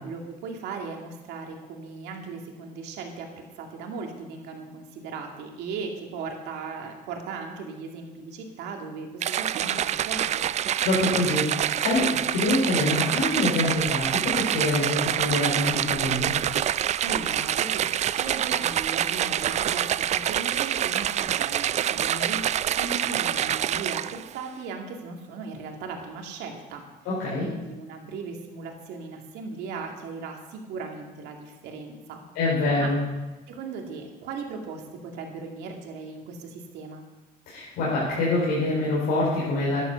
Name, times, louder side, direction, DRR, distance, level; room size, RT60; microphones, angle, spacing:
voice 1, 0.0-10.4 17.0-22.5 22.8-26.8 27.4-32.2 32.8-32.9 33.5-37.0, right 4 dB, 90° right, 2 dB, 2.4 m, -37 dB
sound 1, 9.2-24.3, right 10 dB, 40° right, 0.4 m, -26 dB
voice 2, 10.8-16.3 27.0-27.5 32.3-33.0 37.5-39.8, left 2 dB, 85° left, -6 dB, 4.5 m, -25 dB
13.0 x 11.0 x 6.9 m, 1.2 s
cardioid pair, 110°, 17 cm